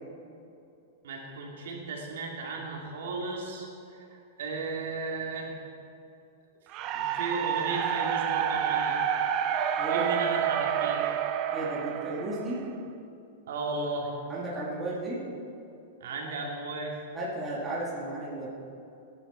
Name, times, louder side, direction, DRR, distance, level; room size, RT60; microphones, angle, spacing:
voice 1, 1.0-5.5 6.9-9.0 9.9-11.2 13.5-14.1 16.0-16.9, right 3 dB, 70° right, -1 dB, 2.8 m, -35 dB
sound 1, 6.7-12.9, right 9 dB, 25° right, 0.6 m, -29 dB
voice 2, 9.8-10.1 11.5-12.6 14.3-15.2 17.1-18.5, right 1 dB, 10° right, -7 dB, 2.3 m, -34 dB
17.5 x 10.5 x 4.4 m, 2.7 s
supercardioid pair, 175°, 0 cm